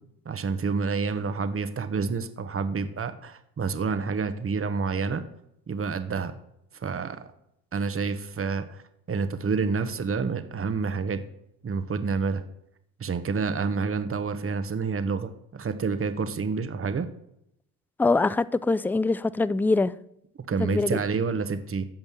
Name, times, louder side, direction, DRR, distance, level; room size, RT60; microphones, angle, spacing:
voice 1, 0.2-5.2 5.7-6.3 6.8-7.3 7.7-8.8 9.1-11.2 11.6-12.4 13.0-17.1 20.5-21.9, right 5 dB, 30° right, 1.3 m, -28 dB
voice 2, 18.0-19.9 20.6-21.0, left 3 dB, 5° left, 0.4 m, -23 dB
15.0 x 5.3 x 7.5 m
hypercardioid pair, 65°, 44 cm